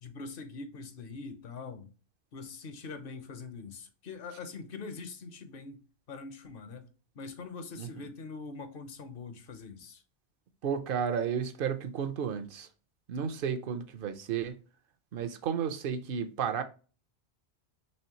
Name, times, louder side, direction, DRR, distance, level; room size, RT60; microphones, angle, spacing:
voice 1, 0.0-1.9 2.3-5.8 6.1-6.9 7.1-10.0, left 4 dB, 60° left, 0.8 m, -43 dB
voice 2, 10.6-12.7 13.1-14.6 15.1-16.6, right 7 dB, 60° right, 0.7 m, -32 dB
4.3 x 3.0 x 2.8 m
omnidirectional pair, 1.2 m